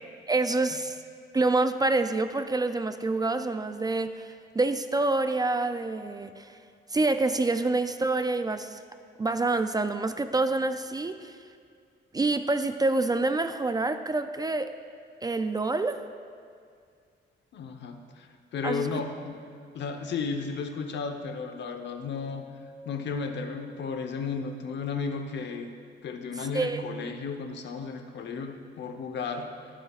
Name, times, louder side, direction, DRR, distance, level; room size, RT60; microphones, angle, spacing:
voice 1, 0.3-1.0 1.3-6.5 6.9-8.8 9.2-11.4 12.1-14.8 15.2-16.0 18.6-18.9 26.4-26.8, right 3 dB, 20° right, 9 dB, 0.4 m, -27 dB
voice 2, 17.5-19.4 19.7-22.5 22.8-25.7 26.0-29.5, left 5 dB, 65° left, 6 dB, 0.9 m, -34 dB
20.0 x 7.5 x 2.4 m, 2.2 s
cardioid pair, 90°, 20 cm